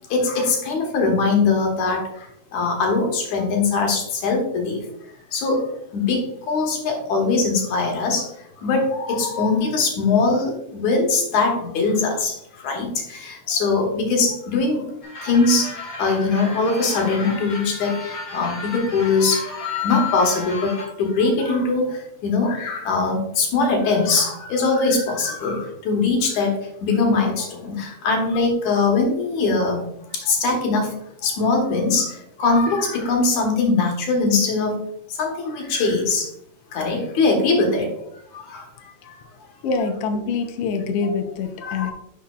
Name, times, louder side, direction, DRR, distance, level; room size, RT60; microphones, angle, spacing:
voice 1, 0.1-4.9 5.3-14.8 15.2-15.7 16.0-29.8 30.1-31.0 31.2-34.8 35.1-36.3 36.7-37.9 38.3-38.7 39.0-39.3 41.6-41.9, left 3 dB, 85° left, 2 dB, 2.9 m, -22 dB
sound 1, 15.0-20.8, left 5 dB, 45° left, 3.2 m, -32 dB
voice 2, 39.6-41.9, left 4 dB, 70° left, 5 dB, 1.6 m, -25 dB
10.5 x 5.9 x 2.4 m, 0.76 s
omnidirectional pair, 3.3 m